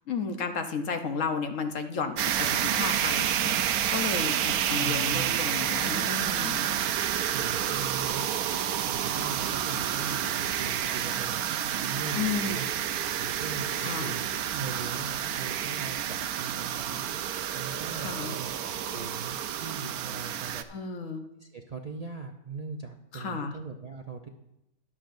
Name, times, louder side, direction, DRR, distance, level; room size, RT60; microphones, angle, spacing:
voice 1, 0.1-6.6 12.1-12.6 13.8-14.1 17.9-18.3 20.7-21.3 23.1-23.5, left 5 dB, 60° left, 6 dB, 1.1 m, -33 dB
sound 1, 2.2-20.6, right 10 dB, 80° right, 1.1 m, -29 dB
voice 2, 4.8-5.3 7.3-8.2 8.9-12.7 13.2-17.1 17.5-20.6 21.4-24.3, right 5 dB, 50° right, 3 dB, 0.4 m, -40 dB
22.0 x 7.4 x 2.6 m, 0.85 s
omnidirectional pair, 1.6 m